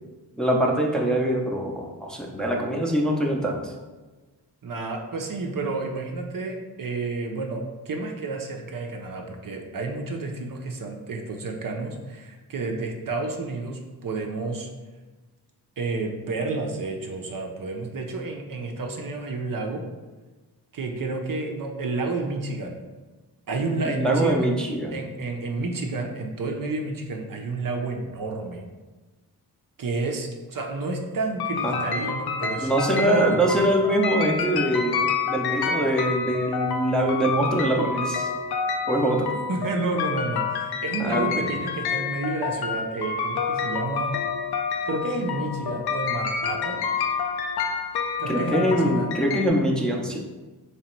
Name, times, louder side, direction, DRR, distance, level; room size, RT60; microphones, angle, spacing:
voice 1, 0.4-3.7 24.0-25.0 31.6-31.7 32.6-38.3 38.9-39.3 41.0-41.4 48.3-50.2, right 1 dB, ahead, -1 dB, 0.6 m, -23 dB
voice 2, 4.6-14.7 15.8-19.8 20.7-22.8 23.5-24.5 24.9-28.6 29.8-33.7 39.5-44.2 44.9-46.8 48.2-49.1, right 3 dB, 50° right, 2 dB, 0.6 m, -30 dB
sound 1, 31.4-49.5, left 5 dB, 65° left, 0.6 m, -28 dB
3.3 x 2.9 x 4.4 m, 1.2 s
cardioid pair, 70°, 42 cm